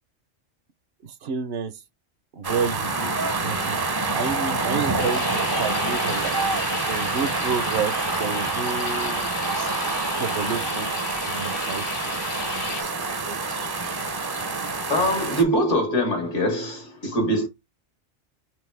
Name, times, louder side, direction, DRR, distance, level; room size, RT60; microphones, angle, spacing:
voice 1, 1.0-1.7 2.3-3.8 4.1-6.4 6.9-9.3 10.2-11.9 15.0-15.1, right 6 dB, 65° right, 0.8 m, -30 dB
sound 1, 2.4-15.4, right 3 dB, 30° right, 0.4 m, -27 dB
sound 2, 5.0-12.8, left 5 dB, 70° left, 1.1 m, -34 dB
voice 2, 14.9-17.5, equal, 85° left, 1.9 m, -23 dB
4.6 x 3.3 x 3.2 m
omnidirectional pair, 1.2 m